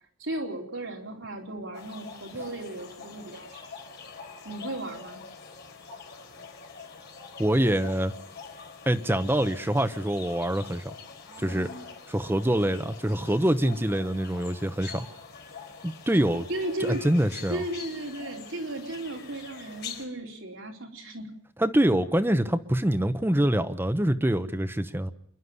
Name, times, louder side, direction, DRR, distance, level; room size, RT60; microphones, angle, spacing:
voice 1, 0.2-3.6 4.4-5.2 16.5-17.0 17.5-21.3, right 1 dB, 65° right, 1 dB, 4.2 m, -35 dB
sound 1, 1.7-20.0, left 5 dB, 55° left, 4.1 m, -44 dB
voice 2, 7.4-8.1 8.9-10.9 11.4-11.7 12.1-15.1 15.8-16.5 16.8-17.6 21.6-25.1, right 1 dB, 10° right, 9 dB, 0.9 m, -25 dB
28.0 x 11.5 x 9.6 m, 0.63 s
head